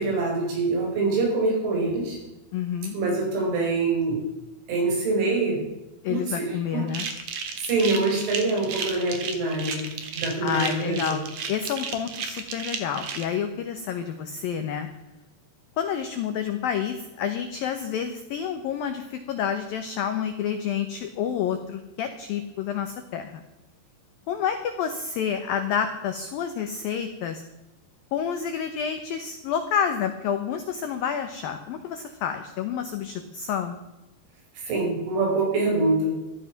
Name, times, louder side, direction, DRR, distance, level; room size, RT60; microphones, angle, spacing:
voice 1, 0.0-2.2 2.9-4.2 4.7-5.6 6.1-6.9 7.6-11.2 34.6-36.2, right 3 dB, 75° right, 0 dB, 7.2 m, -25 dB
voice 2, 2.5-3.0 6.0-7.1 10.4-11.2 11.5-14.9 15.8-23.4 24.3-27.4 28.1-33.8, left 8 dB, 85° left, 7 dB, 2.0 m, -29 dB
sound 1, 6.9-13.2, right 6 dB, 60° right, 2.0 m, -33 dB
15.0 x 12.0 x 5.9 m, 1.0 s
omnidirectional pair, 5.6 m